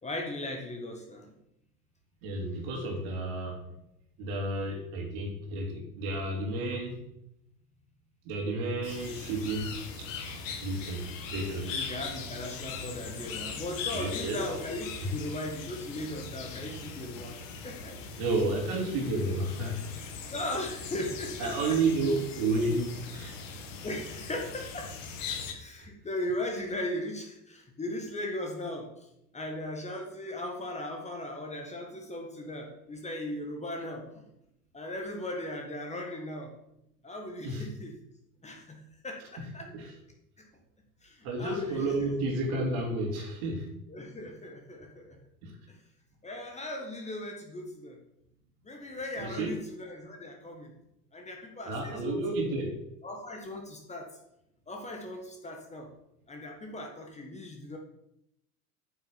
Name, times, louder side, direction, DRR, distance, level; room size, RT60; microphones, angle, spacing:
voice 1, 0.0-1.3 11.6-18.0 20.3-21.8 23.8-25.0 25.5-29.1 29.3-34.2 34.7-36.6 37.0-38.0 38.4-39.7 40.4-40.5 41.0-41.9 43.9-45.2 45.7-45.8 46.2-48.0 48.6-50.7 51.1-52.5 53.0-54.1 54.7-55.9 56.3-57.8, left 1 dB, 15° left, 2 dB, 1.6 m, -38 dB
voice 2, 2.2-3.6 4.2-7.0 8.2-10.1 10.6-11.7 13.9-14.4 15.0-15.1 18.2-20.1 21.4-23.4 37.4-37.7 39.4-39.5 39.7-39.9 41.2-43.7 45.4-45.6 49.2-49.5 51.7-52.8, right 2 dB, 45° right, 2 dB, 2.9 m, -31 dB
sound 1, 8.8-25.5, left 5 dB, 55° left, 1.9 m, -40 dB
9.0 x 6.3 x 7.1 m, 0.82 s
figure-of-eight pair, 85°, 47 cm